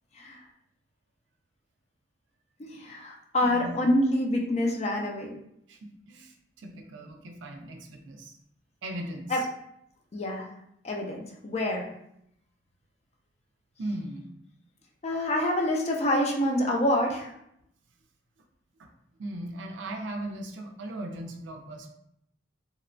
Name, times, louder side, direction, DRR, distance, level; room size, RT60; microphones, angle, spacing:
voice 1, 2.6-5.3 9.3-9.4 10.1-10.5 10.8-11.2 11.4-11.9 15.0-17.3, left 1 dB, 35° left, 0 dB, 0.4 m, -26 dB
voice 2, 3.4-3.8 5.7-8.4 8.8-9.3 13.8-14.4 18.8-18.9 19.2-21.9, right 1 dB, 80° right, 4 dB, 0.4 m, -38 dB
2.8 x 2.1 x 2.5 m, 0.74 s
head